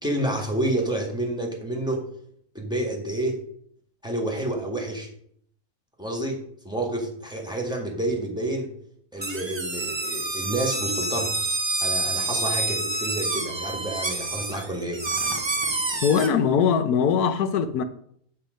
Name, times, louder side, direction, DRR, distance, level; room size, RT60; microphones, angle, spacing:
voice 1, 0.0-2.1 2.5-3.4 4.0-5.1 6.0-8.7 9.1-11.4 11.8-15.0, right 1 dB, 5° right, 1.7 m, -29 dB
sound 1, 9.2-16.3, right 2 dB, 20° right, 1.0 m, -28 dB
voice 2, 16.0-17.8, left 7 dB, 85° left, 1.3 m, -21 dB
8.8 x 7.4 x 5.2 m
omnidirectional pair, 1.6 m